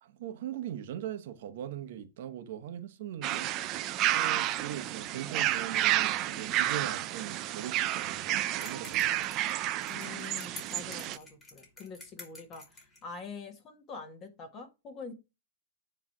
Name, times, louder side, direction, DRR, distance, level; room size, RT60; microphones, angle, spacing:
voice 1, 0.0-3.5 4.1-9.4, right 10 dB, 60° right, 1.0 m, -40 dB
sound 1, 3.2-11.2, right 13 dB, 35° right, 0.5 m, -31 dB
sound 2, 8.6-13.0, left 2 dB, 10° left, 3.0 m, -49 dB
voice 2, 9.9-15.1, left 4 dB, 25° left, 1.9 m, -45 dB
9.6 x 3.3 x 6.0 m
hypercardioid pair, 145°, 0 cm